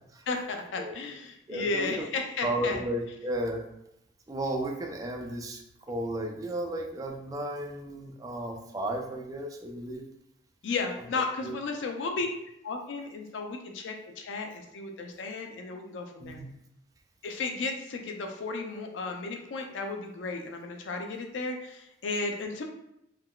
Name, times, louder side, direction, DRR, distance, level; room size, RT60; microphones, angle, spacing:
voice 1, 0.3-2.8 10.6-12.3 12.6-16.4 17.2-22.6, left 3 dB, 90° left, 4 dB, 0.4 m, -34 dB
voice 2, 1.5-2.1 2.4-3.6 4.3-5.6 5.9-10.0 11.4-11.6 16.2-16.5, right 1 dB, 20° right, 1 dB, 0.3 m, -33 dB
3.5 x 2.2 x 2.3 m, 0.82 s
head